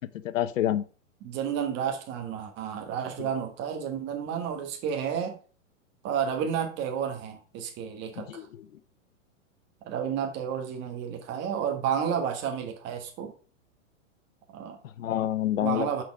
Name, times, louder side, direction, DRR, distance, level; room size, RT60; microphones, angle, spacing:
voice 1, 0.1-0.8 3.2-3.3 8.2-8.7 14.8-16.0, left 12 dB, 85° left, 14 dB, 0.9 m, -28 dB
voice 2, 1.2-5.4 6.0-8.5 9.8-13.3 14.5-14.8 15.6-16.0, right 8 dB, 30° right, 4 dB, 1.6 m, -31 dB
6.4 x 5.0 x 5.9 m, 0.38 s
supercardioid pair, 155°, 38 cm